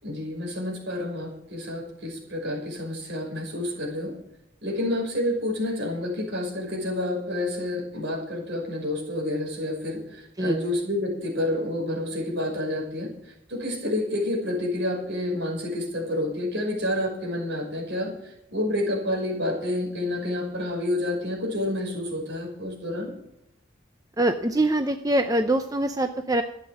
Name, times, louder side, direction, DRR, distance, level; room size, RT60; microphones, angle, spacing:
voice 1, 0.0-4.1 4.6-13.1 13.5-23.1, left 1 dB, 65° right, -1 dB, 5.8 m, -29 dB
voice 2, 24.2-26.4, right 1 dB, 20° right, 7 dB, 0.6 m, -23 dB
13.5 x 9.0 x 7.5 m, 0.80 s
head